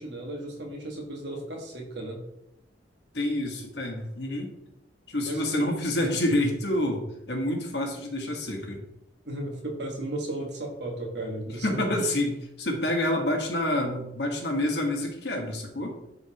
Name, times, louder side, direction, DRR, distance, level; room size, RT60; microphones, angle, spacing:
voice 1, 0.0-2.2 5.2-5.7 9.3-11.9, right 1 dB, 65° right, 1 dB, 1.6 m, -35 dB
voice 2, 3.1-4.5 5.1-8.8 11.5-16.0, left 1 dB, 65° left, 2 dB, 1.4 m, -28 dB
11.0 x 4.2 x 2.9 m, 0.85 s
head